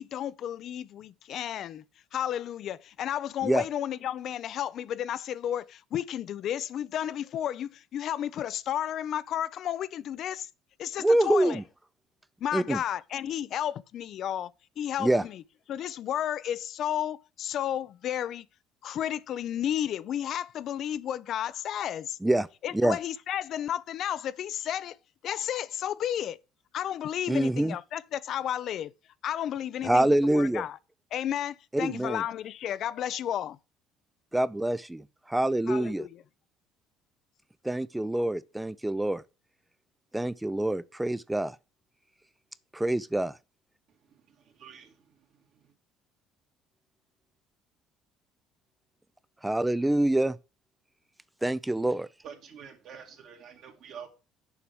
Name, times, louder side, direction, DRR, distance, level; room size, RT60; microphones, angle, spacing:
voice 1, 0.0-1.8 2.1-10.5 10.8-11.6 12.4-15.4 15.7-18.5 18.8-22.2 22.6-25.0 25.2-26.4 26.7-28.9 29.2-30.1 30.3-30.8 31.1-33.6 35.7-36.1, left 10 dB, 60° left, 0.5 m, -32 dB
voice 2, 11.0-11.6 12.5-12.8 15.0-15.2 22.2-22.5 22.7-23.0 27.3-27.8 29.8-30.7 31.7-32.2 34.3-36.1 37.6-39.2 40.1-41.6 42.7-43.3 49.4-50.4 51.4-52.1, right 1 dB, 10° right, 0.4 m, -26 dB
voice 3, 44.6-44.9 52.2-54.1, right 7 dB, 60° right, 2.3 m, -46 dB
7.2 x 4.6 x 6.9 m
cardioid pair, 100°, 0 cm